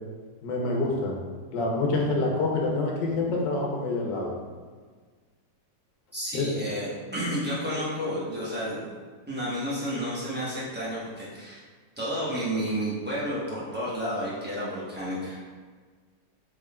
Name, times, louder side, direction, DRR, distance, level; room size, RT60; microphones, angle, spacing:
voice 1, 0.4-1.1 1.5-4.3 6.3-6.4, left 2 dB, 75° left, -1 dB, 1.3 m, -26 dB
voice 2, 6.1-9.0 9.3-11.6 12.0-15.4, equal, 15° right, -9 dB, 0.4 m, -31 dB
4.0 x 3.6 x 2.2 m, 1.5 s
omnidirectional pair, 1.9 m